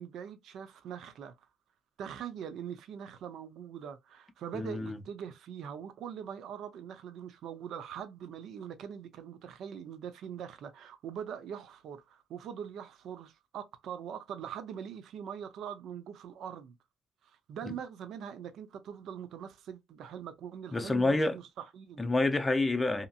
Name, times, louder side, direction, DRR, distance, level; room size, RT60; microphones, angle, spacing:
voice 1, 0.0-1.3 2.0-16.7 17.2-22.0, right 8 dB, 75° right, 0.5 m, -42 dB
voice 2, 4.5-5.0 17.7-17.8 20.7-21.4 22.0-23.1, left 2 dB, 20° left, 0.6 m, -28 dB
2.8 x 2.6 x 2.4 m
cardioid pair, 90°, 0 cm